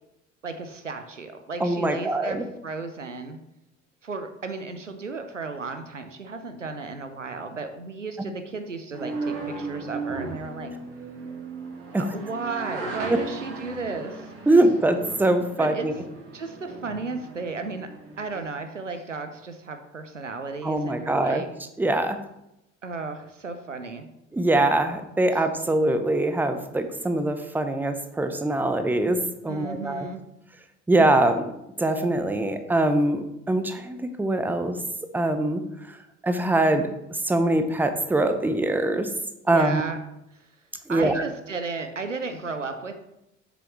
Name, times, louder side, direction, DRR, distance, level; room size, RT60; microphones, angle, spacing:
voice 1, 0.4-3.4 4.0-10.7 12.0-14.3 15.6-15.9 16.3-21.5 22.8-24.1 25.3-25.4 29.5-30.2 39.5-40.0 40.3-40.5 40.9-43.0, right 4 dB, 90° right, 8 dB, 0.6 m, -34 dB
voice 2, 1.6-2.4 11.9-12.0 14.5-15.9 20.6-21.4 21.8-22.2 24.3-29.2 29.4-30.1 30.9-31.4 31.8-34.7 35.1-35.6 36.2-39.1 39.5-39.8 40.9-41.1, right 2 dB, 5° right, 8 dB, 0.7 m, -23 dB
sound 1, 8.9-18.4, right 3 dB, 55° right, 2.1 m, -36 dB
7.0 x 6.9 x 3.1 m, 0.86 s
figure-of-eight pair, 60°, 36 cm